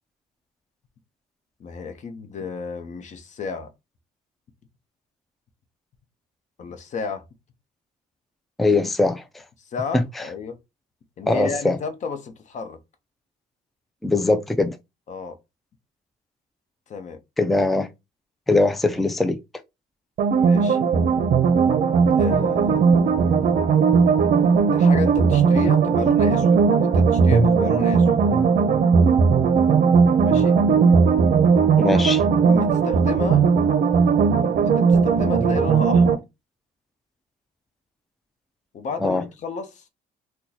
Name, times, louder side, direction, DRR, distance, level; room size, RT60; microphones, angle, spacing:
voice 1, 1.6-3.7 6.6-7.2 9.6-10.6 11.2-12.8 15.1-15.4 16.9-17.2 20.3-20.8 22.2-23.5 24.7-28.1 30.2-30.6 31.9-32.1 32.4-33.5 34.6-36.2 38.7-39.9, left 5 dB, 45° left, 0.8 m, -32 dB
voice 2, 8.6-9.4 9.9-10.3 11.3-11.8 14.0-14.8 17.4-17.9 18.5-19.4 31.8-32.2 39.0-39.2, left 2 dB, ahead, 0.3 m, -21 dB
sound 1, 20.2-36.1, right 5 dB, 50° right, 0.6 m, -18 dB
2.9 x 2.2 x 3.9 m
cardioid pair, 110°, 17 cm